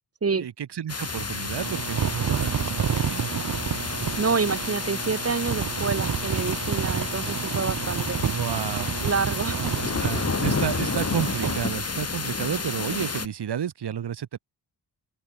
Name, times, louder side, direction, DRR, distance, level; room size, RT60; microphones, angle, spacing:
voice 1, 0.3-3.3 8.3-8.9 9.6-14.4, right 9 dB, 80° right, 2.9 m, -31 dB
sound 1, 0.9-13.3, left 4 dB, 40° left, 6.3 m, -30 dB
sound 2, 1.6-11.7, right 8 dB, 50° right, 1.2 m, -30 dB
voice 2, 4.2-8.2 9.0-9.7, right 5 dB, 35° right, 2.5 m, -27 dB
open air
cardioid pair, 85°, 40 cm